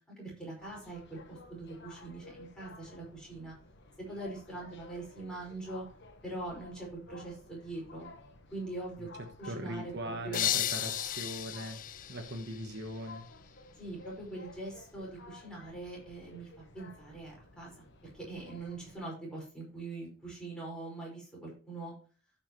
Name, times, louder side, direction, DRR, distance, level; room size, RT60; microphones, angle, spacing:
voice 1, 0.2-3.5 4.1-5.9 6.2-8.1 8.5-9.1 9.4-10.5 13.8-16.5 16.7-17.7 18.1-21.9, right 2 dB, 5° left, -3 dB, 5.2 m, -42 dB
sound 1, 0.6-19.0, left 2 dB, 60° left, 1.3 m, -53 dB
voice 2, 9.4-11.8 12.1-13.3, right 1 dB, 55° right, 4 dB, 1.3 m, -40 dB
sound 2, 10.3-13.1, left 12 dB, 40° left, 0.4 m, -34 dB
16.0 x 5.8 x 3.1 m, 0.37 s
head